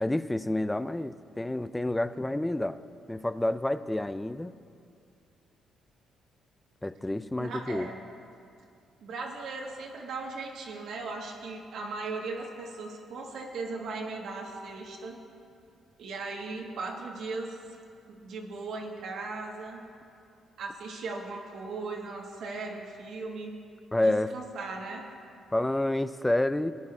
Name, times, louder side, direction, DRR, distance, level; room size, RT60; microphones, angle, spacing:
voice 1, 0.0-2.8 3.1-4.5 6.8-7.9 23.9-24.3 25.5-26.7, left 1 dB, 10° left, 14 dB, 0.3 m, -29 dB
voice 2, 7.4-8.0 9.0-15.2 16.0-17.6 18.1-19.9 20.6-23.6 24.0-25.0, right 3 dB, 75° right, 0 dB, 1.3 m, -38 dB
19.0 x 9.7 x 2.4 m, 2.5 s
cardioid pair, 90°, 0 cm